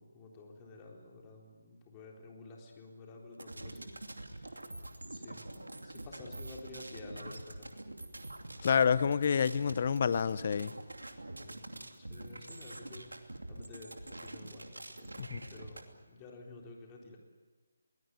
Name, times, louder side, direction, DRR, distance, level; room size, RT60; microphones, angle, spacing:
voice 1, 0.0-4.6 5.1-7.7 11.4-15.2 15.5-17.2, left 3 dB, 20° left, 0 dB, 3.9 m, -52 dB
sound 1, 3.3-15.8, right 1 dB, 85° right, 2.7 m, -46 dB
voice 2, 8.6-10.8 15.2-15.4, left 6 dB, 40° left, 16 dB, 0.9 m, -28 dB
22.0 x 19.0 x 9.5 m, 1.3 s
figure-of-eight pair, 155°, 0 cm